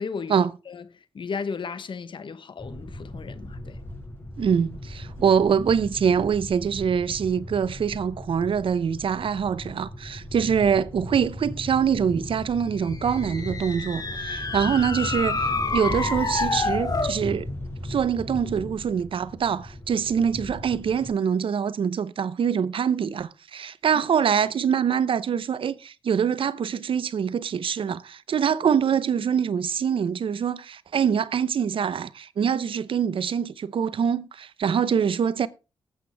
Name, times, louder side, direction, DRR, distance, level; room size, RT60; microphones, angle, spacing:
voice 1, 0.0-0.4 0.7-3.8 23.9-24.0, left 5 dB, 60° left, 1.1 m, -35 dB
sound 1, 2.6-21.1, left 1 dB, 25° left, 5.4 m, -38 dB
voice 2, 4.4-17.5 17.8-35.5, right 7 dB, 65° right, 0.8 m, -24 dB
sound 2, 12.8-17.2, left 3 dB, 40° left, 2.4 m, -28 dB
19.0 x 8.0 x 3.5 m
supercardioid pair, 50°, 10 cm